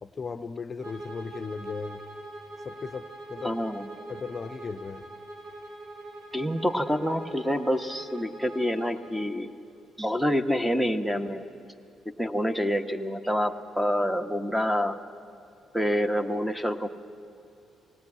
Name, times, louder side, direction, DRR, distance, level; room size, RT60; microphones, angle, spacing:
voice 1, 0.0-2.0 2.6-3.6 4.1-5.1, left 5 dB, 35° left, 9 dB, 0.7 m, -37 dB
Bowed string instrument, 0.8-9.3, right 2 dB, 70° right, 3.1 m, -43 dB
voice 2, 3.4-4.1 6.3-9.5 10.0-11.5 12.2-15.0 15.7-16.9, equal, 5° right, 8 dB, 1.2 m, -27 dB
18.5 x 17.0 x 9.6 m, 2.7 s
cardioid pair, 90°, 0 cm